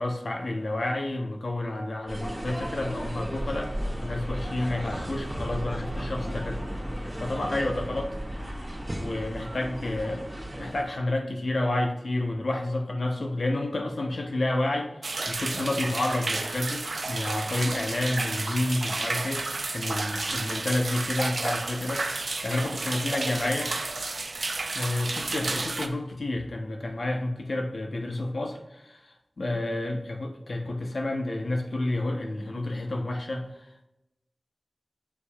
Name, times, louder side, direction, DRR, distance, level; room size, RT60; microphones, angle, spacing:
voice 1, 0.0-6.6 7.2-8.1 9.0-10.3 10.6-14.9 15.3-22.1 22.4-23.7 24.7-33.9, left 2 dB, 80° left, 3 dB, 0.8 m, -30 dB
sound 1, 2.1-10.8, equal, 25° right, 1.9 m, -34 dB
sound 2, 15.0-25.9, right 3 dB, 80° right, 0.5 m, -31 dB
7.0 x 6.9 x 2.3 m, 0.91 s
wide cardioid pair, 65°, 0 cm